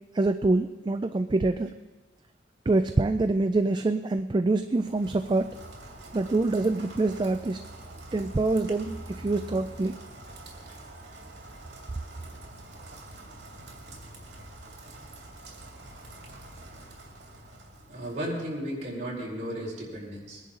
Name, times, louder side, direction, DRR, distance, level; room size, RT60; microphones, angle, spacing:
voice 1, 0.1-1.7 2.7-5.5 6.1-7.6 8.1-9.9, right 2 dB, 25° right, 9 dB, 0.3 m, -25 dB
Rain, 4.7-18.5, right 2 dB, 70° right, 2.7 m, -46 dB
sound 1, 8.8-11.0, right 1 dB, 40° left, 5.7 m, -47 dB
voice 2, 17.9-20.4, equal, 45° right, -4 dB, 4.6 m, -34 dB
22.0 x 10.5 x 3.8 m, 1.2 s
head